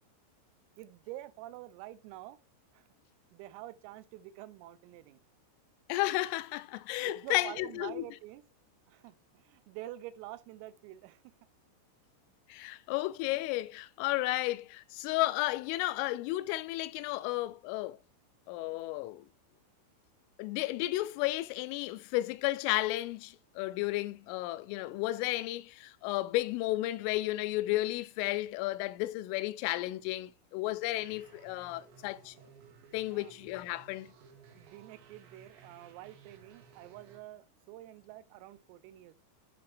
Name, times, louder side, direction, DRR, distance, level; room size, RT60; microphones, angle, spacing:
voice 1, 0.8-2.4 2.7-2.9 3.3-5.2 7.0-8.4 8.9-11.2 33.1-33.3 34.5-39.1, right 15 dB, 90° right, 3.4 m, -47 dB
voice 2, 5.9-8.1 12.5-18.0 18.5-19.3 20.4-32.4 32.9-34.1, left 17 dB, 85° left, 3.0 m, -33 dB
sound 1, 31.0-37.2, right 6 dB, 70° right, 3.1 m, -57 dB
8.5 x 5.8 x 3.2 m
omnidirectional pair, 5.9 m